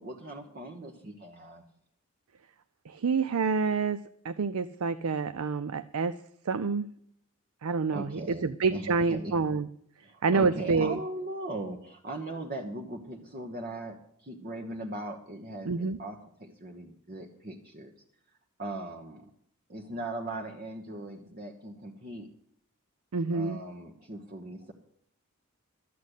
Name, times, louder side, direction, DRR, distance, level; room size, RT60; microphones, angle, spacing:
voice 1, 0.0-1.6 7.9-9.3 10.0-17.9 18.6-19.2 19.7-22.3 23.3-24.7, right 1 dB, 40° right, 1 dB, 1.2 m, -39 dB
voice 2, 2.9-4.0 4.2-6.2 6.5-6.9 7.6-9.7 10.2-11.0 15.7-16.0 23.1-23.6, right 4 dB, 85° right, 13 dB, 0.5 m, -28 dB
12.5 x 8.4 x 8.2 m, 0.67 s
head